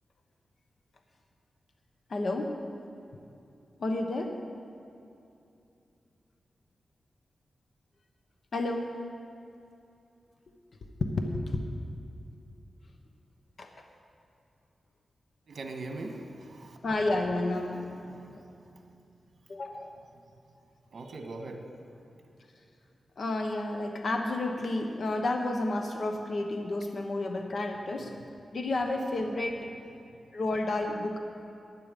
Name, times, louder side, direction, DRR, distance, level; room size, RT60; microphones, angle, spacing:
voice 1, 2.1-2.6 3.8-4.4 8.5-9.0 11.0-11.6 13.6-13.7 16.8-18.4 19.5-19.9 23.2-28.1 28.5-29.7 30.3-31.2, left 2 dB, 55° left, 3 dB, 1.1 m, -31 dB
voice 2, 15.5-16.8 20.9-21.6, right 2 dB, 65° right, 4 dB, 1.5 m, -40 dB
15.5 x 10.5 x 5.2 m, 2.7 s
wide cardioid pair, 125°, 0 cm